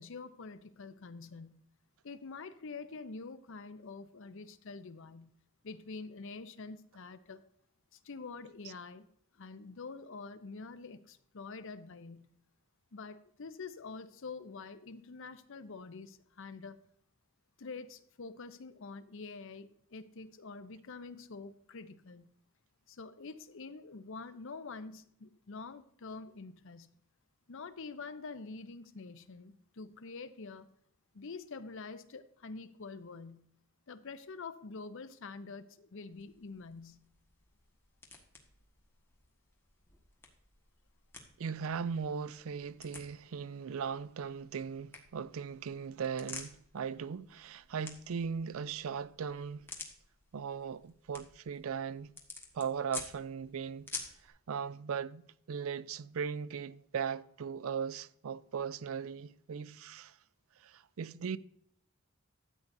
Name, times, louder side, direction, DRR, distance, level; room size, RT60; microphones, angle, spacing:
voice 1, 0.0-1.6 2.0-5.3 5.6-7.4 7.9-9.1 9.3-12.3 12.9-16.8 17.6-22.3 22.9-26.9 27.5-30.7 31.1-33.5 33.9-37.1, left 4 dB, 65° left, 0.7 m, -46 dB
sound 1, 36.1-54.3, left 3 dB, 10° left, 1.5 m, -51 dB
voice 2, 41.4-49.7 50.3-52.1 52.5-53.9 54.2-55.2 55.5-60.2 60.6-61.4, right 6 dB, 80° right, 0.4 m, -38 dB
13.0 x 8.5 x 2.6 m
head